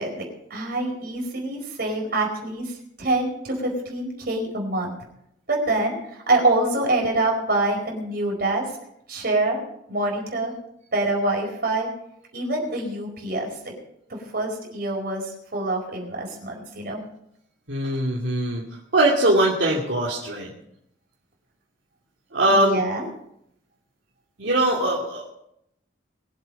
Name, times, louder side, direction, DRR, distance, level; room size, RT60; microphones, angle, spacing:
voice 1, 0.0-4.9 5.5-8.6 9.1-9.6 9.9-10.5 10.9-11.9 12.3-13.7 14.1-15.2 15.5-17.0 22.5-23.1, right 2 dB, 55° right, 0 dB, 4.7 m, -25 dB
voice 2, 17.7-18.6 18.9-20.5 22.3-22.8 24.4-25.3, right 1 dB, 75° right, -4 dB, 2.4 m, -21 dB
22.5 x 7.7 x 5.4 m, 0.76 s
head